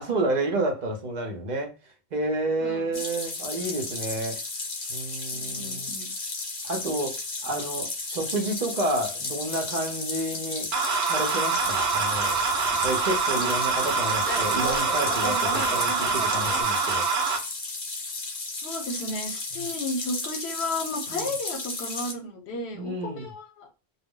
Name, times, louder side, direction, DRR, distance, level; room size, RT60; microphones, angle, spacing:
voice 1, 0.0-1.7 2.1-4.4 4.9-5.9 6.6-7.2 7.4-10.7 11.1-12.4 12.8-17.1 19.5-19.7 21.1-21.3 22.7-23.3, right 2 dB, 50° right, 2 dB, 0.7 m, -30 dB
voice 2, 2.6-3.0 5.3-6.1 18.6-23.7, left 2 dB, 80° left, 4 dB, 0.9 m, -33 dB
sound 1, 2.9-22.1, left 3 dB, 50° left, 0.7 m, -34 dB
sound 2, 10.7-17.4, right 5 dB, 75° right, 0.9 m, -25 dB
sound 3, 11.5-16.6, right 1 dB, 10° right, 0.7 m, -36 dB
2.2 x 2.0 x 3.5 m, 0.30 s
omnidirectional pair, 1.1 m